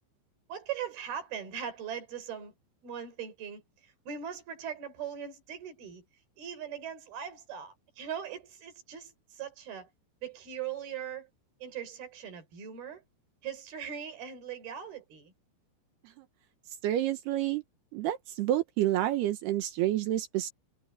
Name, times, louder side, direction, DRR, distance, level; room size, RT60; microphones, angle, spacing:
voice 1, 0.5-2.5 2.8-6.1 6.4-9.9 10.2-11.3 11.6-13.0 13.4-15.3, right 8 dB, 50° right, 6.3 m, -40 dB
voice 2, 16.8-17.6 17.9-20.5, right 13 dB, 75° right, 2.6 m, -29 dB
omnidirectional pair, 5.7 m